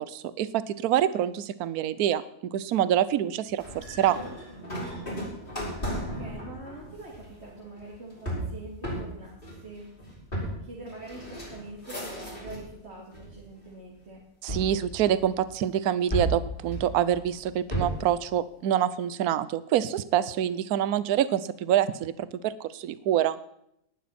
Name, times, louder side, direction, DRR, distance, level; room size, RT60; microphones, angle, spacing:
voice 1, 0.0-2.2 2.5-4.2 14.4-22.1 22.4-23.4, right 10 dB, 75° right, 15 dB, 1.2 m, -26 dB
sound 1, 3.6-12.7 13.1-13.8 14.5-15.6 16.1-18.2, right 1 dB, 35° left, 5.8 m, -35 dB
voice 2, 5.9-9.9 10.6-14.2, right 2 dB, 40° right, -4 dB, 2.9 m, -44 dB
19.0 x 11.5 x 4.3 m, 0.75 s
omnidirectional pair, 1.7 m